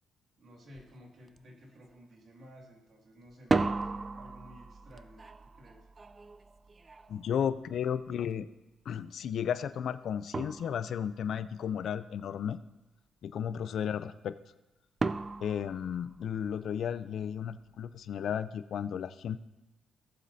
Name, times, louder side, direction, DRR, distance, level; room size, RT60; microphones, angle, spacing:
voice 1, 0.4-5.9, equal, 50° right, 1 dB, 2.2 m, -54 dB
sound 1, 0.8-0.9 1.3-1.8 3.3-8.2 9.8-9.9 10.3-11.3 15.0-16.7, right 3 dB, 30° right, 0.4 m, -35 dB
voice 2, 7.1-8.5 8.9-12.6 13.2-14.3 15.4-19.4, left 8 dB, 65° left, 13 dB, 0.5 m, -34 dB
17.5 x 7.4 x 2.8 m, 1.0 s
cardioid pair, 90°, 0 cm